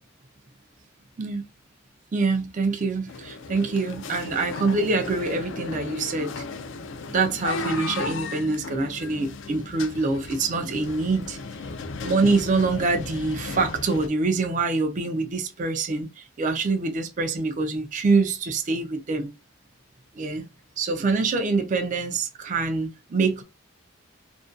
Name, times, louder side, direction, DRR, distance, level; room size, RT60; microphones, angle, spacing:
voice 1, 2.1-6.4 7.1-11.4 12.0-19.3 20.2-20.5 20.8-23.4, right 3 dB, 35° right, 0.4 m, -25 dB
sound 1, 3.1-14.1, left 3 dB, 60° left, 0.3 m, -35 dB
2.4 x 2.2 x 2.3 m
head